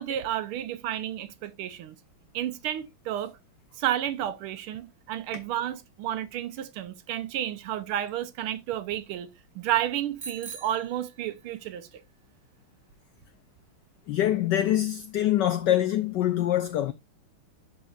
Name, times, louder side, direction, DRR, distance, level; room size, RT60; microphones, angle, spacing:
voice 1, 0.0-1.9 2.3-3.4 3.8-9.3 9.5-12.0, right 11 dB, 80° right, 1.6 m, -31 dB
Bicycle bell, 10.2-11.7, right 4 dB, 40° right, 1.1 m, -43 dB
voice 2, 14.1-16.9, left 12 dB, 85° left, 0.9 m, -24 dB
12.0 x 4.1 x 2.4 m
omnidirectional pair, 2.4 m